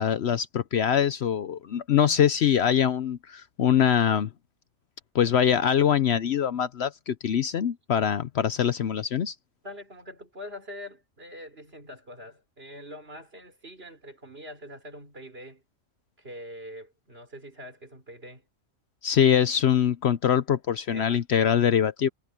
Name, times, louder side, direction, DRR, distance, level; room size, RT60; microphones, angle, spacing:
voice 1, 0.0-4.3 5.1-9.3 19.0-22.1, left 9 dB, 60° left, 0.9 m, -23 dB
voice 2, 9.6-15.6 16.2-18.5 20.9-21.2, equal, 50° right, 5.5 m, -44 dB
omnidirectional pair, 1.3 m